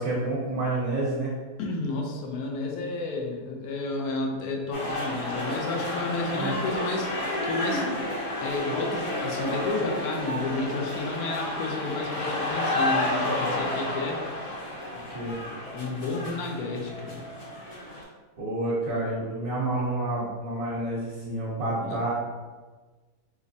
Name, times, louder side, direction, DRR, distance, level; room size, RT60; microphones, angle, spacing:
voice 1, 0.0-1.3 6.3-6.6 15.1-15.4 18.4-22.1, right 2 dB, 75° right, -7 dB, 1.2 m, -29 dB
voice 2, 1.6-14.2 15.7-17.2 21.8-22.0, left 3 dB, 85° left, 0 dB, 1.1 m, -32 dB
sound 1, 4.7-18.0, left 1 dB, 60° left, 1.2 m, -31 dB
3.5 x 3.0 x 2.6 m, 1.3 s
omnidirectional pair, 1.5 m